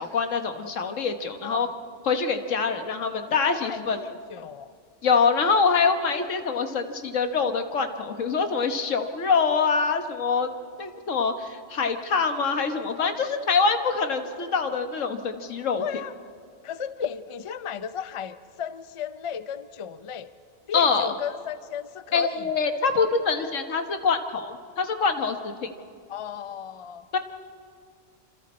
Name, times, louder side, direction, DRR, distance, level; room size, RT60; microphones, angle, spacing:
voice 1, 0.0-1.7 2.0-4.0 5.0-10.5 10.8-15.8 20.7-21.1 22.1-25.7 27.1-27.2, left 5 dB, 90° left, 7 dB, 1.6 m, -25 dB
voice 2, 1.4-1.7 3.3-4.7 12.7-13.1 14.4-14.5 15.8-16.1 16.6-20.3 20.7-22.5 23.4-23.5 26.1-27.0, left 8 dB, 40° left, 12 dB, 0.5 m, -35 dB
27.0 x 26.5 x 4.3 m, 2.2 s
omnidirectional pair, 1.3 m